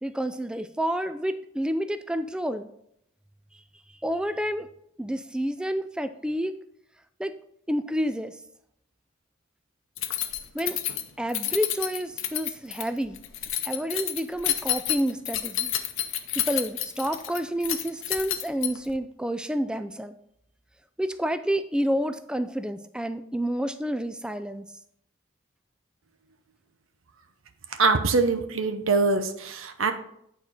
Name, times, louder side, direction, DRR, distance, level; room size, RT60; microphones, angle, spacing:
voice 1, 0.0-2.7 4.0-4.7 5.0-6.6 7.2-7.4 7.7-8.4 10.5-10.8 11.2-13.2 13.6-15.7 16.4-20.2 21.0-24.7, equal, 5° right, 10 dB, 0.3 m, -29 dB
Keys jangling, 10.0-19.0, left 12 dB, 65° left, 0.7 m, -30 dB
voice 2, 27.7-29.9, right 4 dB, 75° right, 8 dB, 0.8 m, -23 dB
8.8 x 4.4 x 4.9 m, 0.73 s
head